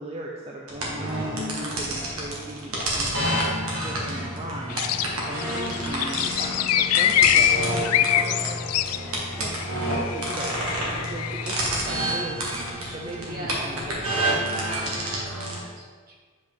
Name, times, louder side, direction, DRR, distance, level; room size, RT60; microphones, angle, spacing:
voice 1, 0.0-14.7, right 1 dB, 30° right, -2 dB, 0.6 m, -38 dB
sound 1, 0.7-15.6, right 1 dB, 70° right, 1.6 m, -29 dB
sound 2, 4.7-11.6, left 11 dB, 85° left, 0.3 m, -25 dB
voice 2, 5.4-5.8 13.2-16.2, right 1 dB, 45° right, -2 dB, 1.3 m, -40 dB
8.2 x 4.9 x 3.6 m, 1.5 s
head